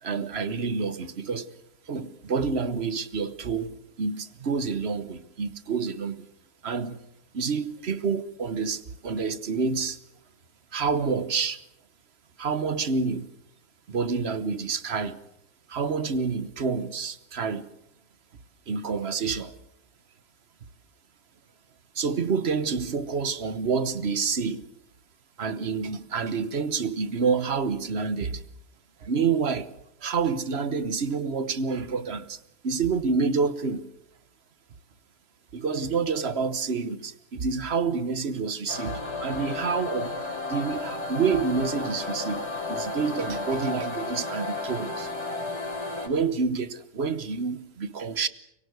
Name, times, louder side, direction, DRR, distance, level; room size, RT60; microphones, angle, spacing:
voice 1, 0.0-1.5 1.9-6.3 6.6-7.0 7.3-10.0 10.7-11.6 12.4-13.3 13.9-15.2 15.7-17.7 18.7-19.5 21.9-24.7 25.4-28.4 29.0-29.7 30.0-33.9 35.5-45.3 46.0-48.3, right 5 dB, 45° right, 1.3 m, -28 dB
sound 1, 38.7-46.1, left 3 dB, 45° left, 5.5 m, -33 dB
24.5 x 22.5 x 8.0 m
omnidirectional pair, 1.6 m